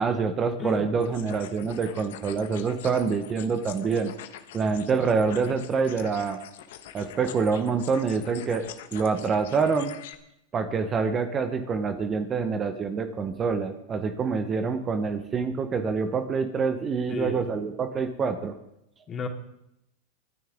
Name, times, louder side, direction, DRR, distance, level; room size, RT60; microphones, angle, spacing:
voice 1, 0.0-4.1 4.5-6.4 6.9-8.6 8.9-9.9 10.5-18.5, right 5 dB, 30° right, 8 dB, 1.1 m, -26 dB
sound 1, 1.0-10.1, left 11 dB, 70° left, 1.2 m, -45 dB
voice 2, 17.1-17.4 19.1-19.3, left 5 dB, 25° left, 1 dB, 2.9 m, -32 dB
26.0 x 9.3 x 3.7 m, 0.82 s
hypercardioid pair, 110°, 0 cm